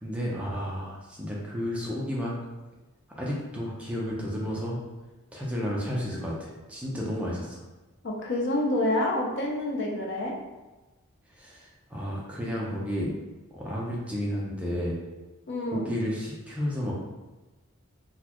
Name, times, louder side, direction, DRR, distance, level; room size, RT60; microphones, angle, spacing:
voice 1, 0.0-2.3 3.1-4.8 5.3-7.6 11.4-13.1 13.5-15.0 15.7-16.9, equal, 5° right, -5 dB, 0.5 m, -32 dB
voice 2, 8.0-10.3 15.5-15.8, left 1 dB, 50° left, -1 dB, 0.5 m, -27 dB
4.0 x 2.3 x 2.9 m, 1.1 s
head